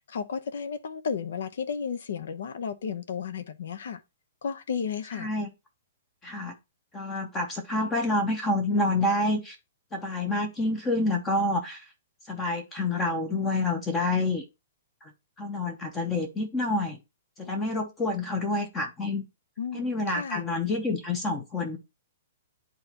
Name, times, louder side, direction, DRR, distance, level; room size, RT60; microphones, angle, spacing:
voice 1, 0.0-4.0 4.4-5.3 19.6-20.4, left 6 dB, 60° left, 1.0 m, -33 dB
voice 2, 5.2-5.5 6.2-6.5 6.9-9.6 9.9-11.8 12.3-14.4 15.4-17.0 17.4-19.2 19.7-21.8, left 2 dB, 10° left, 0.8 m, -28 dB
10.5 x 4.0 x 2.9 m
hypercardioid pair, 175°, 0 cm